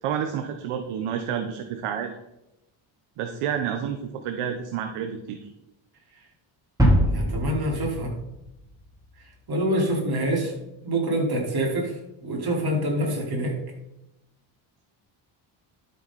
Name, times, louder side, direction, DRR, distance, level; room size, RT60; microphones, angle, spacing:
voice 1, 0.0-2.1 3.2-5.4, right 8 dB, 85° right, 6 dB, 1.3 m, -29 dB
sound 1, 6.8-8.9, equal, 5° right, 4.2 m, -23 dB
voice 2, 7.1-8.2 9.5-10.6 10.8-13.6, right 1 dB, 45° right, -1 dB, 4.9 m, -26 dB
12.5 x 8.3 x 4.3 m, 0.90 s
cardioid pair, 90°, 50 cm